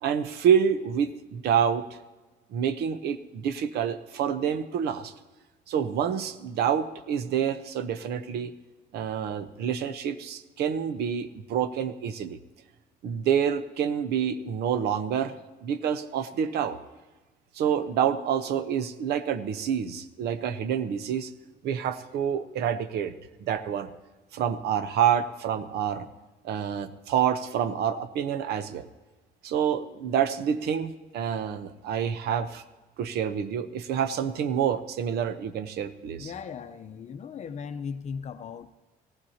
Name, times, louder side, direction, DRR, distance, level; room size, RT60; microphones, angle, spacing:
voice 1, 0.0-1.8 2.5-5.1 5.7-8.5 8.9-12.4 13.0-15.3 15.6-16.8 17.5-21.3 21.6-23.1 23.4-23.9 24.3-26.1 26.4-28.9 29.4-32.6 33.0-36.3, right 8 dB, 70° right, 12 dB, 0.8 m, -27 dB
voice 2, 36.2-38.7, left 6 dB, 45° left, 9 dB, 0.7 m, -37 dB
18.0 x 15.0 x 2.8 m, 1.2 s
cardioid pair, 110°, 17 cm